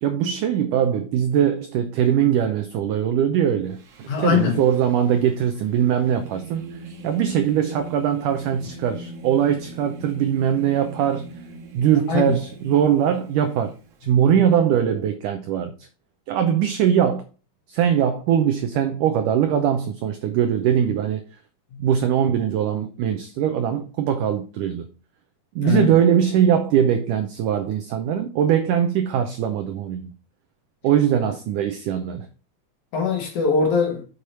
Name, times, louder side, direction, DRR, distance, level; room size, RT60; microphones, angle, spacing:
voice 1, 0.0-3.8 4.2-6.6 7.0-11.3 11.7-13.7 14.0-15.7 16.3-17.2 17.7-21.2 21.8-24.9 25.6-30.1 30.8-32.3, right 9 dB, 90° right, 1.8 m, -21 dB
Singing, 3.7-14.1, right 2 dB, 50° right, 1.9 m, -40 dB
voice 2, 4.1-4.6 12.1-12.4 25.6-25.9 32.9-34.0, left 5 dB, 60° left, 2.6 m, -21 dB
7.0 x 6.5 x 4.3 m
omnidirectional pair, 4.6 m